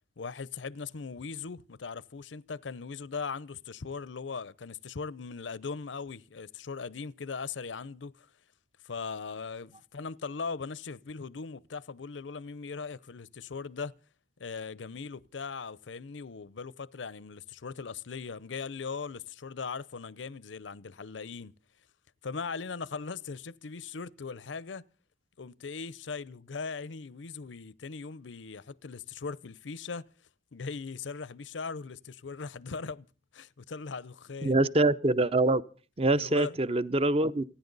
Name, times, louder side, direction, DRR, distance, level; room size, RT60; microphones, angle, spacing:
voice 1, 0.2-8.3 8.8-13.9 14.4-21.5 22.2-24.9 25.4-30.1 30.5-33.1 33.3-34.6 36.2-36.6, left 5 dB, 80° left, 0.7 m, -39 dB
voice 2, 34.4-35.6 36.0-37.4, right 2 dB, 30° right, 0.7 m, -24 dB
29.5 x 10.0 x 4.0 m
head